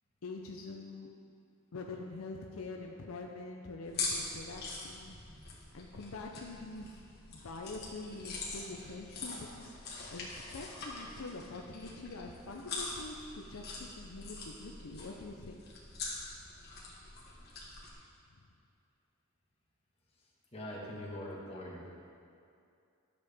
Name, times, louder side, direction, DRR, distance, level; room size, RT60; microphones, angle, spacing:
voice 1, 0.2-1.1 1.7-5.1 5.7-7.0 7.3-9.7 10.1-15.6, left 3 dB, 70° left, 1 dB, 0.6 m, -45 dB
sound 1, 3.8-17.9, left 3 dB, 50° left, 1.6 m, -43 dB
voice 2, 20.5-21.9, left 1 dB, 30° left, -4 dB, 1.5 m, -42 dB
11.5 x 6.7 x 3.5 m, 2.4 s
head